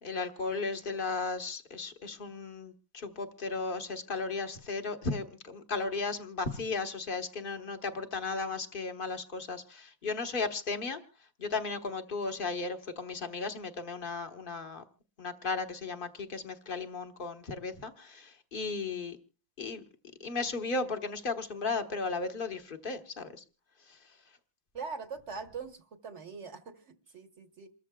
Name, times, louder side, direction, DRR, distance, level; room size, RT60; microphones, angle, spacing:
voice 1, 0.0-11.0 11.4-14.8 15.2-19.2 19.6-19.8 20.2-23.4 23.9-24.0, left 4 dB, 35° left, 7 dB, 1.1 m, -35 dB
voice 2, 24.7-27.7, right 5 dB, 45° right, 8 dB, 1.2 m, -42 dB
28.0 x 14.0 x 2.3 m, 0.34 s
omnidirectional pair, 2.1 m